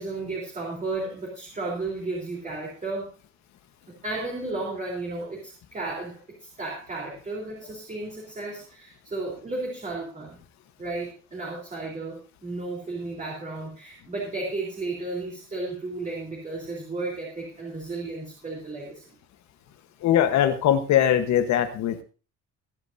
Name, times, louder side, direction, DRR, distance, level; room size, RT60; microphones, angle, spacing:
voice 1, 0.0-3.1 3.9-10.4 10.8-19.0, right 2 dB, 25° right, -3 dB, 3.8 m, -33 dB
voice 2, 20.0-22.0, left 10 dB, 65° left, 8 dB, 1.3 m, -21 dB
23.0 x 9.1 x 2.7 m, 0.34 s
cardioid pair, 160°, 30 cm